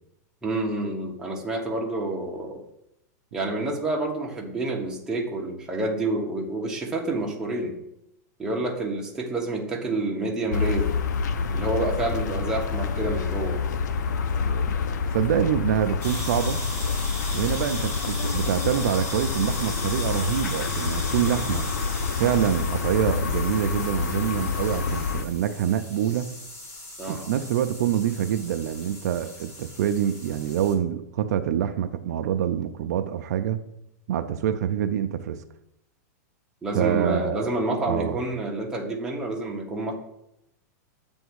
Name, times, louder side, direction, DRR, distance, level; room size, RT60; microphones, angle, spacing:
voice 1, 0.4-2.6 3.3-7.7 8.4-10.9 11.5-13.6 27.0-27.3 36.6-40.0, right 2 dB, 5° right, -2 dB, 1.2 m, -28 dB
sound 1, 10.5-25.2, left 5 dB, 85° left, 0.6 m, -27 dB
voice 2, 14.4-14.7 15.1-16.6 17.3-21.7 22.2-26.3 27.1-33.6 34.1-35.4 36.7-37.6 37.8-38.2, right 10 dB, 70° right, 8 dB, 0.5 m, -26 dB
sound 2, 16.0-30.7, left 1 dB, 50° left, 2.9 m, -37 dB
7.9 x 3.5 x 6.3 m, 0.80 s
supercardioid pair, 155°, 9 cm